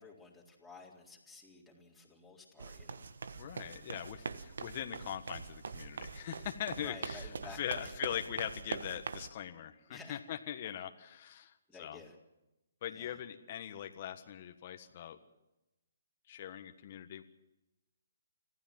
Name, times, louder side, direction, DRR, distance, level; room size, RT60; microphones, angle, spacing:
voice 1, 0.0-3.1 6.8-8.2 9.9-10.2 11.7-12.2 12.9-13.2, left 4 dB, ahead, -7 dB, 4.0 m, -53 dB
sound 1, 2.6-9.3, right 5 dB, 75° right, 1.2 m, -43 dB
voice 2, 3.4-12.0 12.8-15.2 16.3-17.2, left 10 dB, 45° left, 6 dB, 1.5 m, -41 dB
26.0 x 15.5 x 7.6 m, 0.97 s
hypercardioid pair, 145°, 0 cm